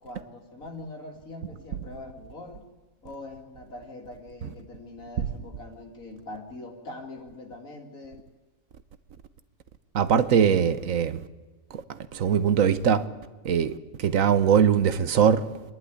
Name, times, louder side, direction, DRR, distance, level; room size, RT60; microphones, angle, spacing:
voice 1, 0.0-2.6 3.0-8.2, left 2 dB, 85° left, 2.8 m, -42 dB
voice 2, 9.9-11.2 11.7-13.0 13.4-15.5, right 7 dB, 75° right, 1.3 m, -22 dB
26.0 x 11.0 x 9.7 m
omnidirectional pair, 1.4 m